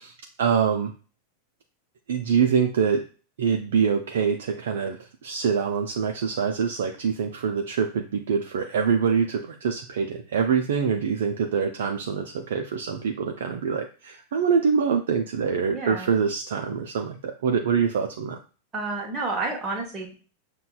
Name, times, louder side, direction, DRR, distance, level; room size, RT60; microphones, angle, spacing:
voice 1, 0.1-0.9 2.1-3.0 3.4-18.4, right 6 dB, 60° right, 4 dB, 0.4 m, -25 dB
voice 2, 15.7-16.1 18.7-20.2, right 3 dB, 20° right, -1 dB, 0.9 m, -30 dB
6.5 x 2.2 x 2.3 m, 0.37 s
figure-of-eight pair, 90°, 0 cm